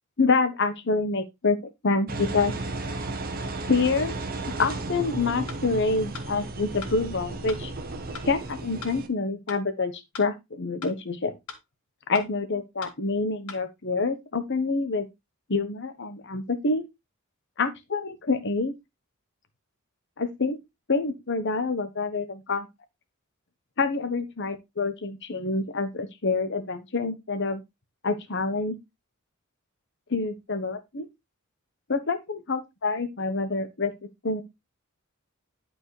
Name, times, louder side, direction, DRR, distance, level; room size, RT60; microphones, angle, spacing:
voice 1, 0.2-1.6 1.8-2.5 3.7-4.1 4.6-7.7 8.2-11.3 12.1-15.1 15.5-16.9 17.6-18.7 20.2-20.6 20.9-22.7 23.8-27.6 28.0-28.8 30.1-31.1 31.9-33.9 34.2-34.4, left 3 dB, 55° left, 1.1 m, -27 dB
Engine, 2.1-9.1, right 2 dB, 45° right, 1.1 m, -34 dB
sound 1, 5.5-5.6 6.1-6.3 6.8-7.0 7.5-7.6 8.1-8.3 8.8-9.0 9.5-9.6 10.1-10.3 10.8-11.0 11.5-11.6 12.1-12.3 12.8-13.0 13.5-13.6, left 5 dB, 80° left, 2.0 m, -40 dB
11.5 x 4.6 x 3.2 m
head